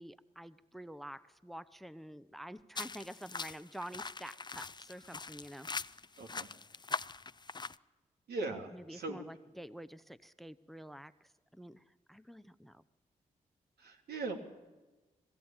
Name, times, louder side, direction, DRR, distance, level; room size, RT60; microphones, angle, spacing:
voice 1, 0.0-5.7 8.7-12.8, equal, ahead, 16 dB, 0.8 m, -48 dB
sound 1, 2.7-7.7, left 4 dB, 25° left, 0.6 m, -42 dB
voice 2, 6.2-6.5 8.3-9.2 13.8-14.4, right 3 dB, 75° right, 3 dB, 3.0 m, -39 dB
20.5 x 16.0 x 8.9 m, 1.2 s
supercardioid pair, 40°, 16 cm